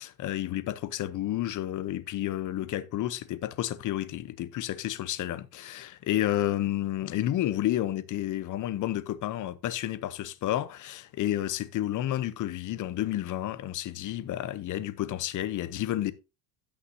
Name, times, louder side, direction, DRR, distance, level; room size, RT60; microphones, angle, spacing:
voice 1, 0.0-16.1, left 13 dB, 40° left, 0.8 m, -31 dB
16.0 x 5.9 x 2.7 m
cardioid pair, 135°, 47 cm